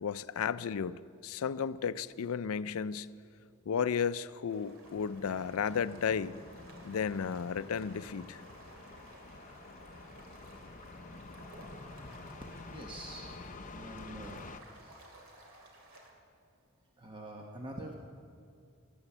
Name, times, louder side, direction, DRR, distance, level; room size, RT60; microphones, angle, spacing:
voice 1, 0.0-3.1 3.7-6.4 6.8-8.4, left 7 dB, 75° left, 15 dB, 0.4 m, -33 dB
sound 1, 4.5-16.1, right 1 dB, 65° right, 2.5 m, -55 dB
sound 2, 4.8-14.6, left 3 dB, 35° left, 0.6 m, -49 dB
voice 2, 12.7-13.5 13.7-14.4 14.8-15.2 17.0-17.9, right 1 dB, 20° right, 0 dB, 1.0 m, -46 dB
16.0 x 11.5 x 7.2 m, 2.3 s
head